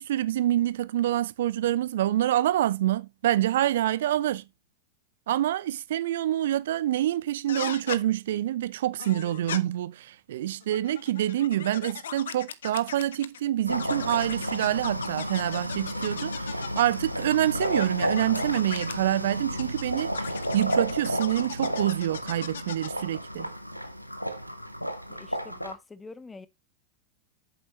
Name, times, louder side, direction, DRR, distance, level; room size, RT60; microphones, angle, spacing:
voice 1, 0.0-4.4 5.3-16.5 16.8-23.5, right 13 dB, 60° right, 0.6 m, -26 dB
sound 1, 7.5-8.0 9.0-9.6 10.6-13.4 13.7-17.0 17.6-18.9 19.6-23.0, left 8 dB, 65° left, 0.8 m, -38 dB
sound 2, 13.7-25.7, equal, 90° left, 1.1 m, -32 dB
voice 2, 25.1-26.5, left 3 dB, 10° left, 0.9 m, -44 dB
8.9 x 7.3 x 3.1 m
figure-of-eight pair, 90°, 0 cm